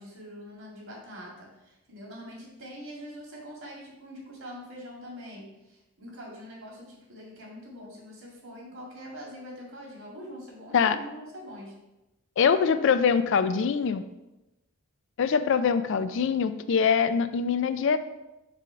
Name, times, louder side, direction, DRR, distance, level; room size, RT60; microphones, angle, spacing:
voice 1, 0.0-11.7, equal, 65° right, -3 dB, 2.2 m, -44 dB
voice 2, 12.4-14.0 15.2-18.0, left 6 dB, 55° left, 12 dB, 0.3 m, -23 dB
4.8 x 3.8 x 5.6 m, 0.96 s
head